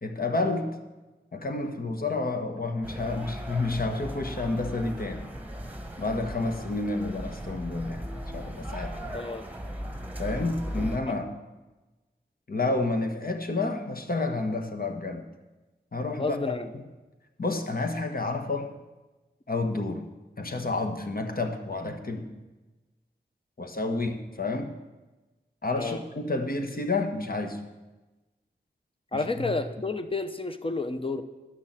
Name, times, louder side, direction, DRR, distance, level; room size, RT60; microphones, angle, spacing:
voice 1, 0.0-0.7 1.3-5.2 6.0-8.1 8.3-9.2 10.2-11.3 12.5-15.2 15.9-16.8 17.4-18.7 19.5-20.0 20.4-22.3 23.6-24.7 25.6-27.6 29.1-29.5, left 2 dB, 55° left, 4 dB, 1.3 m, -30 dB
sound 1, 2.8-11.0, equal, 10° right, 1.3 m, -37 dB
voice 2, 9.1-9.4 10.7-10.8 16.2-16.7 25.8-26.0 29.1-31.2, left 3 dB, 30° left, 9 dB, 0.8 m, -30 dB
11.5 x 6.2 x 7.5 m, 1.2 s
wide cardioid pair, 55°, 18 cm